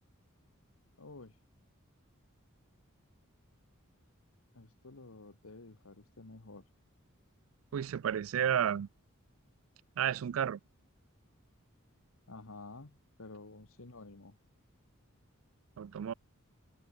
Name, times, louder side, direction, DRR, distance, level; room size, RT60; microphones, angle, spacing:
voice 1, 1.0-1.4 4.5-6.7 12.3-14.4, left 3 dB, 80° left, 1.5 m, -51 dB
voice 2, 7.7-8.9 10.0-10.6 15.8-16.1, right 9 dB, 75° right, 0.3 m, -31 dB
head